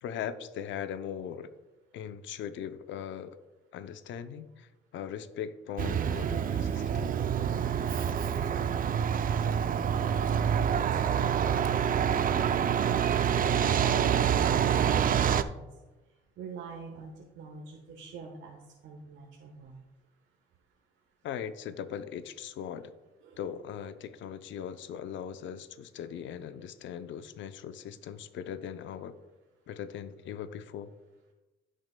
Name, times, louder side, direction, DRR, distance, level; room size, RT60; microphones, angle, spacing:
voice 1, 0.0-1.5 1.9-3.4 3.7-7.2 21.2-22.9 23.4-29.2 29.7-30.9, left 8 dB, 75° left, 10 dB, 0.6 m, -39 dB
Truck, 5.8-15.4, right 8 dB, 45° right, 0.4 m, -27 dB
voice 2, 10.3-11.6 12.3-15.7 16.4-19.8 23.2-23.4, right 5 dB, 80° right, 0 dB, 1.2 m, -44 dB
15.5 x 6.4 x 2.2 m, 1.1 s
cardioid pair, 90°, 20 cm